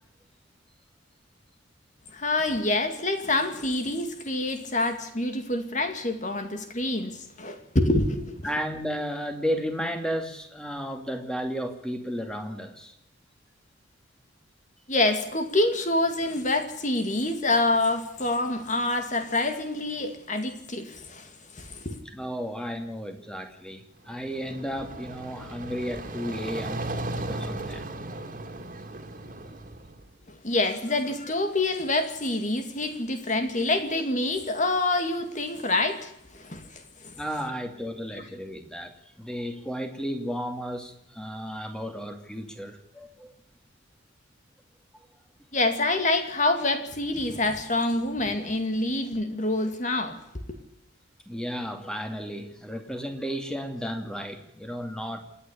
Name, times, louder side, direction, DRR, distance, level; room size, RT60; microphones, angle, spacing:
voice 1, 2.1-8.4 14.9-22.0 30.4-37.1 45.5-50.2, left 2 dB, 35° left, 7 dB, 2.3 m, -26 dB
voice 2, 8.4-12.9 22.0-27.9 37.2-43.3 44.9-45.0 51.3-55.2, equal, 5° left, 5 dB, 2.5 m, -33 dB
sound 1, 24.0-30.1, right 2 dB, 40° right, 2.8 m, -36 dB
28.0 x 9.8 x 9.9 m, 0.80 s
head